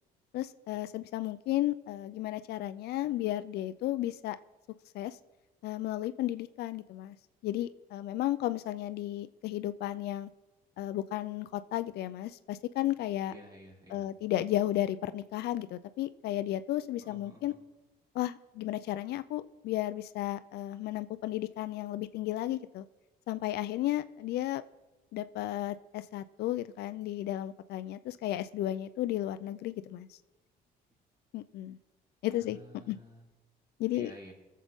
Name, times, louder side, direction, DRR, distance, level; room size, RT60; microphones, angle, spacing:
voice 1, 0.3-4.4 4.9-5.2 5.6-7.2 7.4-10.3 10.8-13.3 13.9-17.5 18.1-22.8 23.3-24.6 25.1-30.1 31.3-31.8 32.2-32.6 32.9-33.0 33.8-34.1, left 14 dB, 75° left, 13 dB, 0.5 m, -33 dB
voice 2, 13.3-14.1 17.0-17.6 32.3-33.2 33.9-34.3, equal, 25° right, -1 dB, 3.4 m, -51 dB
21.5 x 7.5 x 3.6 m, 1.1 s
cardioid pair, 110°, 17 cm